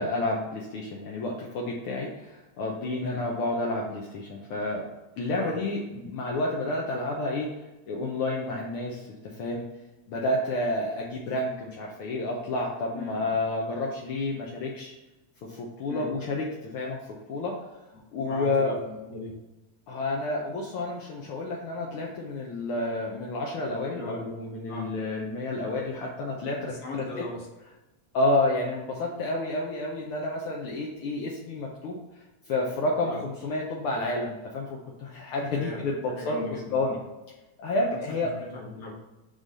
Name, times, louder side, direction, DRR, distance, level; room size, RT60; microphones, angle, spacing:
voice 1, 0.0-4.9 5.2-7.5 7.9-9.1 9.4-9.6 10.1-14.9 15.5-17.6 18.1-18.8 19.9-27.0 28.1-32.0 32.5-37.0 37.6-38.4, left 2 dB, 75° left, -2 dB, 1.3 m, -30 dB
voice 2, 18.2-19.3 23.9-24.3 24.7-24.9 26.5-27.5 33.0-33.2 35.5-37.0 37.8-38.9, left 2 dB, 45° left, -3 dB, 1.6 m, -39 dB
4.9 x 3.8 x 5.3 m, 1.0 s
omnidirectional pair, 3.3 m